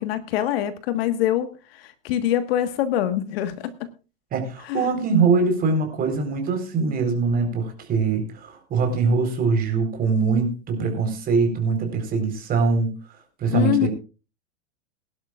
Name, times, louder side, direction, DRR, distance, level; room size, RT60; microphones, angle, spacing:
voice 1, 0.0-1.5 1.8-3.9 4.6-4.9 13.5-13.9, left 11 dB, 55° left, 10 dB, 1.6 m, -24 dB
voice 2, 4.3-12.9 13.4-13.9, right 4 dB, 25° right, 5 dB, 4.1 m, -22 dB
22.0 x 11.5 x 2.4 m, 0.32 s
supercardioid pair, 145°, 35 cm